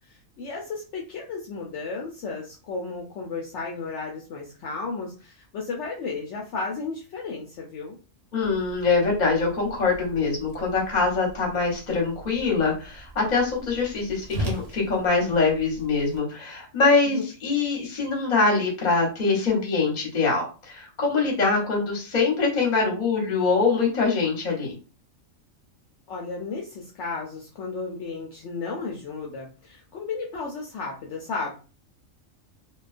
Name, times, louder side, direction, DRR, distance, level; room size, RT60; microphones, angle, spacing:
voice 1, 0.1-8.0 17.1-17.2 26.1-31.5, left 4 dB, 70° left, -1 dB, 0.8 m, -34 dB
voice 2, 8.3-24.7, left 4 dB, 40° left, -1 dB, 0.9 m, -23 dB
Whoosh swoosh swish, 8.4-16.2, right 1 dB, 85° right, 0.3 m, -39 dB
2.3 x 2.2 x 2.4 m, 0.35 s
omnidirectional pair, 1.3 m